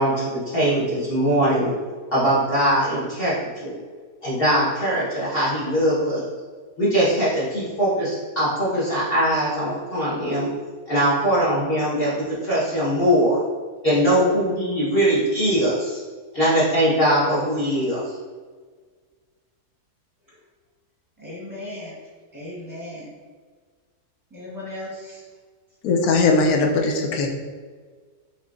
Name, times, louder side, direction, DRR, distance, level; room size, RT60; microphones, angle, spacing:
voice 1, 0.0-1.7 2.1-3.8 4.2-6.2 6.8-10.5 10.9-12.1 12.4-13.4 13.8-16.0 16.3-18.1, equal, 40° left, -10 dB, 1.3 m, -21 dB
voice 2, 21.2-22.0 22.3-23.1 24.3-25.2, left 1 dB, 15° right, -6 dB, 1.1 m, -36 dB
voice 3, 25.8-27.3, left 3 dB, 70° left, 2 dB, 1.1 m, -19 dB
5.5 x 3.2 x 2.5 m, 1.5 s
omnidirectional pair, 1.7 m